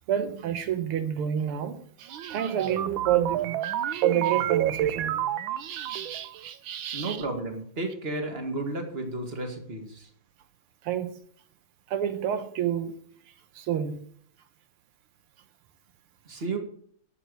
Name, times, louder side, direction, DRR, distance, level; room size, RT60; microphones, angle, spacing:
voice 1, 0.1-5.2 5.6-7.2 10.8-11.1 11.9-13.0 13.6-14.0, right 10 dB, 90° right, 1.9 m, -29 dB
sound 1, 2.1-6.3, right 12 dB, 70° right, 1.4 m, -29 dB
voice 2, 6.9-10.1 16.3-16.6, right 2 dB, 30° right, 2.2 m, -32 dB
11.0 x 8.0 x 6.9 m
omnidirectional pair, 2.4 m